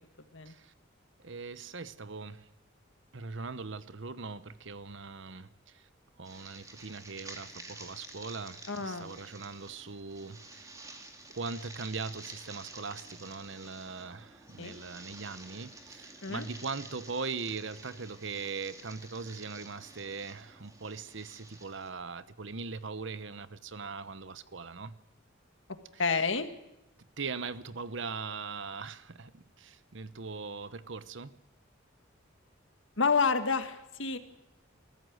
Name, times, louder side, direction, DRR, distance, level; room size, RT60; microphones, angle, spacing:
voice 1, 1.2-2.5 3.1-5.9 6.2-10.7 11.3-25.0 25.9-26.2 27.2-31.3, right 4 dB, 65° right, 14 dB, 1.0 m, -40 dB
sound 1, 6.2-21.9, right 2 dB, 15° right, 2.7 m, -50 dB
voice 2, 8.7-9.1 14.6-14.7 16.2-16.5 26.0-26.5 33.0-34.2, left 5 dB, 70° left, 8 dB, 1.8 m, -29 dB
21.0 x 14.5 x 9.2 m, 0.90 s
head